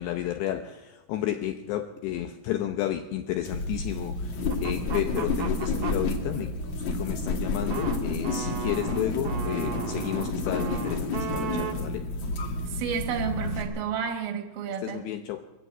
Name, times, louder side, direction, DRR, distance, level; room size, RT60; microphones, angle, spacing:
voice 1, 0.0-4.3 4.6-6.5 6.9-12.1 14.8-15.5, left 12 dB, 80° left, 7 dB, 2.6 m, -32 dB
sound 1, 3.4-13.6, left 2 dB, 50° left, 2.6 m, -30 dB
sound 2, 4.5-6.0 7.2-11.7, right 8 dB, 60° right, 2.5 m, -36 dB
voice 2, 12.7-15.1, right 7 dB, 75° right, 6 dB, 4.4 m, -31 dB
23.0 x 14.5 x 8.9 m, 1.1 s
omnidirectional pair, 5.9 m